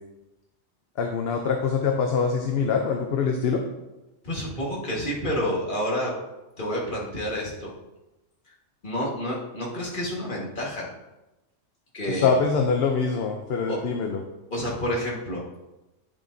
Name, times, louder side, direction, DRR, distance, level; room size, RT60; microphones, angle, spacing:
voice 1, 1.0-3.6 12.1-14.2, left 5 dB, 60° left, 4 dB, 0.9 m, -24 dB
voice 2, 4.2-6.1 6.6-7.7 8.8-10.9 11.9-12.3 13.7-13.8 14.5-15.4, equal, 40° left, -4 dB, 1.9 m, -29 dB
10.0 x 7.2 x 2.7 m, 1.0 s
omnidirectional pair, 1.3 m